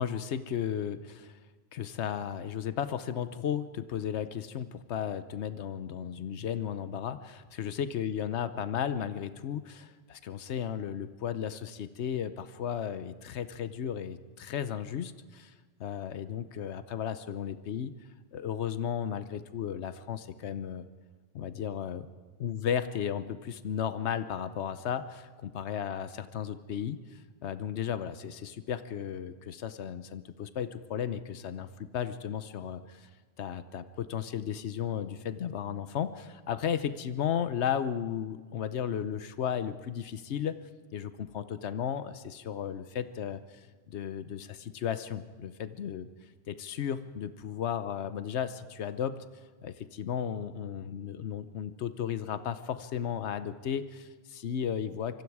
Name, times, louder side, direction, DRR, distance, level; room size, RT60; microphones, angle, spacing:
voice 1, 0.0-1.4 1.7-15.5 15.8-17.9 18.3-20.9 21.3-22.1 22.4-33.1 33.4-40.5 40.9-46.1 46.5-49.2 49.6-55.2, left 8 dB, 85° left, 12 dB, 1.1 m, -34 dB
25.0 x 24.0 x 4.8 m, 1.5 s
omnidirectional pair, 1.1 m